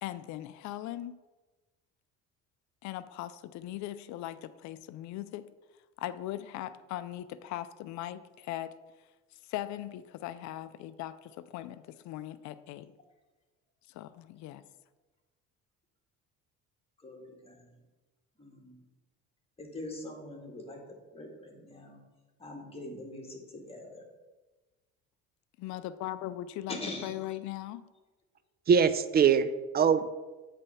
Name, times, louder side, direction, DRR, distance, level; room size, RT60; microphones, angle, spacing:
voice 1, 0.0-1.2 2.8-5.5 6.0-8.7 9.5-12.9 13.9-14.6 25.6-26.8 27.0-27.8, left 13 dB, 65° left, 0.5 m, -39 dB
voice 2, 17.0-17.8 18.4-18.8 19.6-22.0 22.4-24.1 26.7-27.2, left 2 dB, 20° left, 1.8 m, -43 dB
voice 3, 28.7-30.2, right 7 dB, 30° right, 0.4 m, -23 dB
8.0 x 3.3 x 5.5 m
supercardioid pair, 90°, 31 cm